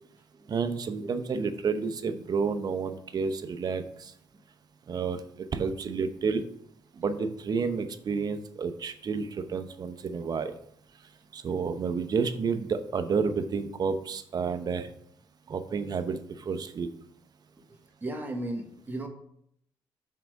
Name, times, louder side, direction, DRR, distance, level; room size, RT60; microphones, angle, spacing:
voice 1, 0.5-4.1 4.9-6.4 7.0-10.5 11.3-14.9 15.5-16.9, right 5 dB, 50° right, 9 dB, 0.8 m, -30 dB
voice 2, 18.0-19.1, right 1 dB, 20° right, 2 dB, 1.3 m, -36 dB
5.8 x 4.7 x 6.3 m, 0.70 s
cardioid pair, 85°, 9 cm